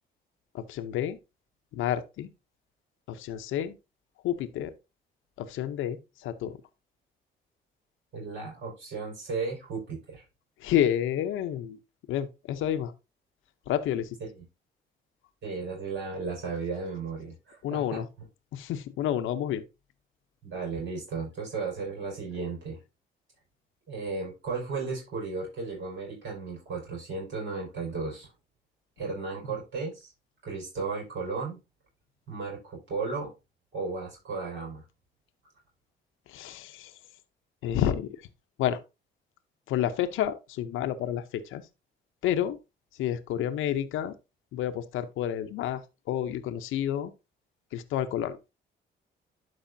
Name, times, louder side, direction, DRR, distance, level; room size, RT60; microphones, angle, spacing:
voice 1, 0.5-1.2 1.7-2.3 3.1-3.8 4.2-4.7 5.4-6.6 10.6-11.8 12.1-12.9 13.7-14.2 17.6-18.1 18.5-19.6 36.3-36.9 37.6-38.1 38.6-38.8 39.7-41.6 42.2-42.6 43.0-44.1 44.5-45.8 46.1-47.1 47.7-48.4, left 10 dB, 85° left, 0.7 m, -29 dB
voice 2, 8.1-10.2 14.2-14.4 15.4-18.0 20.4-22.8 23.9-28.3 29.0-30.1 30.4-31.6 32.3-33.3 33.7-34.8, right 4 dB, 70° right, 4.8 m, -35 dB
11.5 x 4.9 x 2.6 m
cardioid pair, 90°, 20 cm